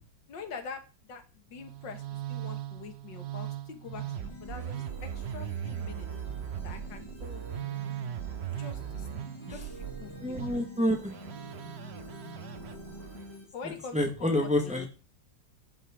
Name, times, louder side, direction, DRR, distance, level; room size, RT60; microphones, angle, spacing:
voice 1, 0.3-1.2 1.5-6.1 6.6-7.6 8.6-10.4 13.5-14.9, left 6 dB, 80° left, 6 dB, 2.1 m, -45 dB
Musical instrument, 1.5-13.3, right 10 dB, 60° right, 0.7 m, -39 dB
sound 1, 3.8-13.4, left 1 dB, 15° left, 2.6 m, -47 dB
voice 2, 10.2-11.1 13.9-14.9, left 1 dB, 5° right, 3 dB, 1.5 m, -28 dB
11.0 x 7.7 x 3.7 m, 0.33 s
omnidirectional pair, 1.9 m